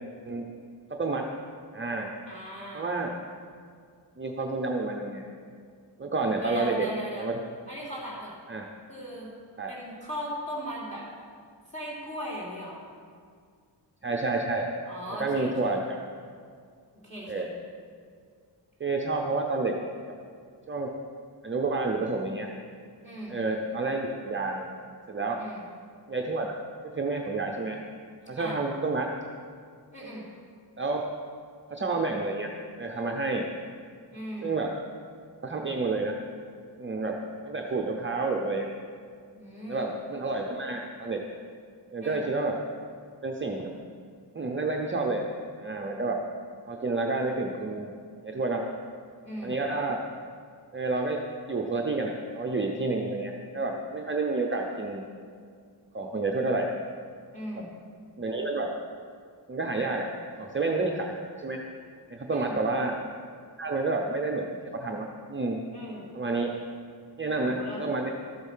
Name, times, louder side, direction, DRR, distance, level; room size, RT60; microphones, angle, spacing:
voice 1, 0.9-1.3 1.7-2.1 2.7-3.1 4.2-5.2 6.0-6.9 7.2-7.4 8.5-8.7 9.6-9.7 14.0-14.7 15.2-16.0 17.3-17.5 18.8-19.7 20.1-20.2 20.7-20.9 21.4-22.5 23.3-24.7 25.1-25.4 26.1-26.5 26.8-27.8 28.3-29.1 30.8-31.0 31.7-32.5 32.8-33.5 34.4-34.7 35.4-36.2 36.8-37.2 37.4-38.7 39.7-41.2 41.9-42.6 43.2-43.7 44.3-45.2 45.6-46.2 46.7-47.9 48.2-48.6 49.4-50.0 50.7-51.2 51.5-55.0 55.9-56.7 57.6-57.7 58.2-58.7 59.5-60.1 60.4-61.6 62.1-62.9 63.6-64.4 64.7-65.6 66.1-66.5 67.2-68.1, right 3 dB, 25° right, 1 dB, 0.6 m, -29 dB
voice 2, 2.2-2.9 6.4-7.3 7.7-8.3 8.9-9.3 9.7-11.1 11.7-12.8 14.9-15.7 17.0-17.5 23.0-23.4 25.3-25.6 28.4-28.6 29.9-30.2 34.1-34.5 39.3-39.9 42.0-42.2 49.2-49.5 57.3-57.7 62.3-62.6 65.7-66.1 67.4-67.8, equal, 15° left, -5 dB, 3.2 m, -38 dB
13.5 x 7.8 x 5.6 m, 2.1 s
wide cardioid pair, 175°, 44 cm